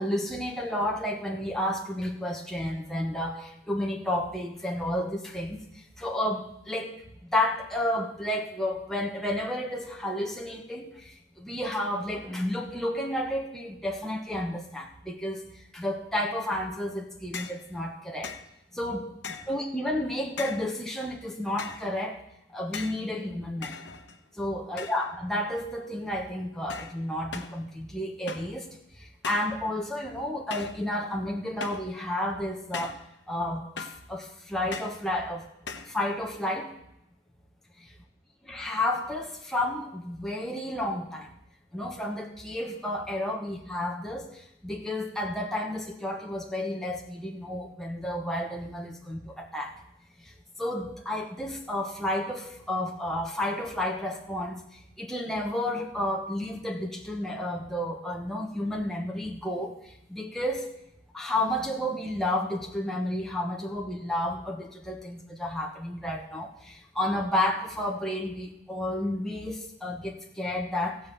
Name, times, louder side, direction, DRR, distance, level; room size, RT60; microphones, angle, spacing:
voice 1, 0.0-5.6 6.0-18.3 18.7-19.2 19.5-22.2 22.5-23.8 24.4-28.7 29.0-33.0 33.3-35.4 35.9-36.7 38.5-41.3 41.7-49.7 50.6-54.6 55.0-60.7 61.1-71.0, left 1 dB, ahead, -1 dB, 1.2 m, -31 dB
sound 1, 17.3-17.6 18.2-18.5 19.2-19.6 20.4-20.7 21.6-21.9 22.7-23.0 23.6-24.3 24.8-25.2 25.5-25.9 26.7-27.0 27.3-27.6 28.3-28.6 29.2-29.6 30.5-30.8 31.6-31.9 32.7-33.1 33.8-34.1 34.7-35.0 35.7-36.0, left 5 dB, 70° left, 1.0 m, -39 dB
15.5 x 5.4 x 8.5 m, 0.80 s
head